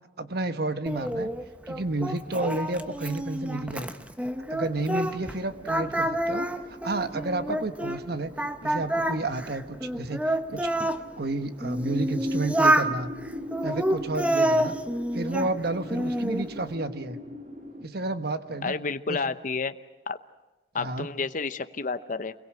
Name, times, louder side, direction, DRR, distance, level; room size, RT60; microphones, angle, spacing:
voice 1, 0.2-1.3 1.7-3.9 4.5-8.3 8.6-10.7 11.2-13.1 13.6-14.7 15.1-17.2 17.8-18.7 19.1-19.2 20.8-21.1, right 2 dB, 60° right, 10 dB, 1.3 m, -31 dB
Singing, 0.9-5.4 5.7-8.0 8.4-11.0 11.6-12.9 13.5-15.5 15.9-16.5, right 1 dB, 10° right, 1.0 m, -28 dB
sound 1, 4.7-17.8, equal, 45° right, 3.5 m, -42 dB
voice 2, 18.6-19.7 20.1-20.2 20.7-22.3, left 4 dB, 45° left, 11 dB, 0.9 m, -30 dB
28.5 x 22.0 x 7.7 m, 1.1 s
head